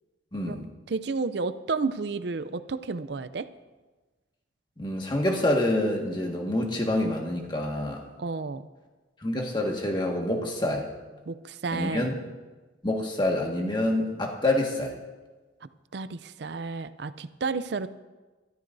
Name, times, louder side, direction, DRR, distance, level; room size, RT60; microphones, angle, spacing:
voice 1, 0.3-0.6 4.8-8.0 9.2-10.9 11.7-12.2 12.8-14.9, left 1 dB, 25° left, 0 dB, 1.7 m, -27 dB
voice 2, 0.9-3.5 8.2-8.6 11.3-12.2 15.9-17.9, right 4 dB, 60° right, 13 dB, 0.5 m, -31 dB
21.0 x 13.5 x 2.7 m, 1.3 s
head